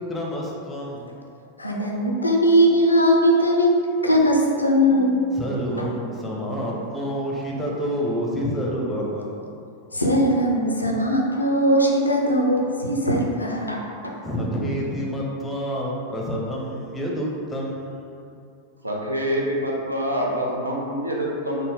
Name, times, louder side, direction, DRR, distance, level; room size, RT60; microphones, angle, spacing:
voice 1, 0.1-1.1 5.4-9.5 14.2-18.4, equal, 15° left, -2 dB, 0.6 m, -28 dB
voice 2, 1.6-3.7 4.0-5.9 9.9-14.2, equal, 85° left, -1 dB, 0.4 m, -20 dB
voice 3, 18.8-21.7, equal, 85° right, -2 dB, 0.5 m, -26 dB
3.9 x 2.1 x 3.4 m, 2.5 s
figure-of-eight pair, 90°, 0 cm